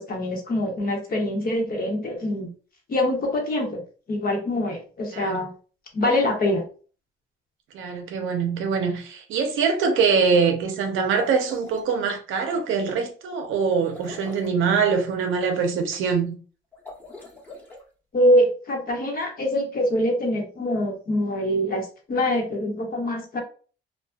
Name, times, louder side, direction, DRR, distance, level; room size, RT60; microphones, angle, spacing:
voice 1, 0.0-2.5 2.9-3.8 4.1-5.5 5.9-6.6 18.1-23.4, left 1 dB, 50° left, 0.9 m, -24 dB
voice 2, 5.1-5.5 7.7-16.4, right 5 dB, 85° right, 0.6 m, -23 dB
sound 1, 11.0-11.9 13.7-14.6 16.7-17.8, left 2 dB, 10° left, 1.0 m, -43 dB
2.5 x 2.2 x 2.3 m
cardioid pair, 90°, 20 cm